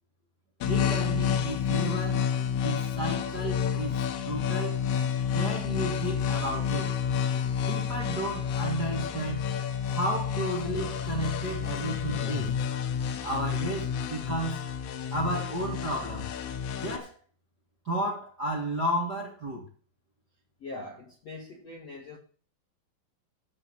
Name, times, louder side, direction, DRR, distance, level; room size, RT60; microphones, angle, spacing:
sound 1, 0.6-17.0, left 7 dB, 80° left, 3.8 m, -30 dB
voice 1, 0.6-4.8 5.3-6.9 7.7-9.5 9.9-12.5 13.2-14.6 15.1-16.3 16.8-17.1 17.8-19.7, right 1 dB, 35° right, 1.6 m, -33 dB
voice 2, 20.6-22.2, left 2 dB, 55° left, 1.8 m, -42 dB
13.0 x 6.0 x 8.2 m
omnidirectional pair, 5.8 m